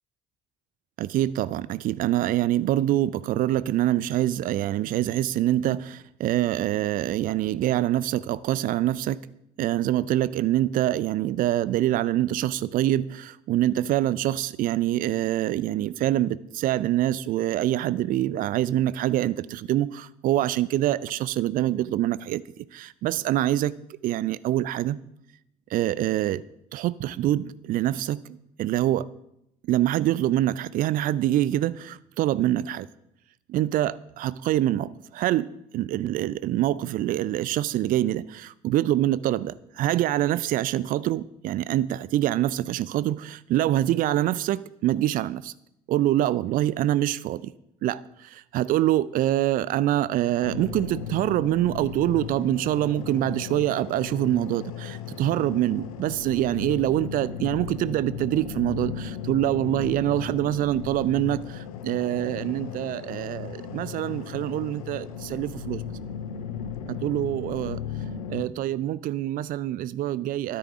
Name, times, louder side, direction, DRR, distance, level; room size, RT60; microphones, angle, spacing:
voice 1, 1.0-9.2 9.6-23.7 24.0-25.0 25.7-26.4 26.7-28.2 28.6-29.1 29.7-32.9 33.5-45.5 45.9-47.5 47.8-65.8 66.9-67.8 68.3-70.6, right 13 dB, 50° right, 0.5 m, -25 dB
sound 1, 50.4-68.4, left 8 dB, 75° left, 0.8 m, -36 dB
12.5 x 10.0 x 3.7 m
figure-of-eight pair, 50°, 19 cm